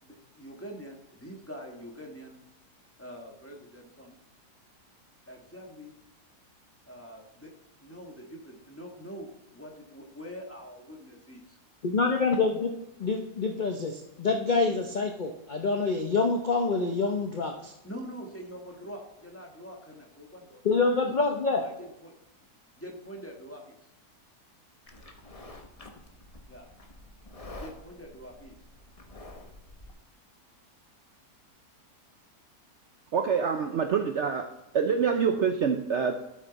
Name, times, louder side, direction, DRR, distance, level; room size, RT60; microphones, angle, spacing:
voice 1, 0.0-2.4 3.0-4.2 5.3-5.9 6.8-7.5 7.8-11.6 17.8-20.8 21.6-22.5 22.8-23.7 24.9-25.1 26.5-26.7 27.6-28.5, equal, 10° left, 0 dB, 1.5 m, -45 dB
voice 2, 11.8-12.7 13.0-17.7 20.6-21.6, left 4 dB, 45° left, 4 dB, 0.6 m, -26 dB
Livestock farm animals working animals, 24.9-29.9, left 2 dB, 25° left, 1.0 m, -48 dB
voice 3, 33.1-34.5 34.7-36.1, right 6 dB, 60° right, 6 dB, 0.8 m, -26 dB
12.5 x 6.4 x 4.1 m, 0.95 s
omnidirectional pair, 1.7 m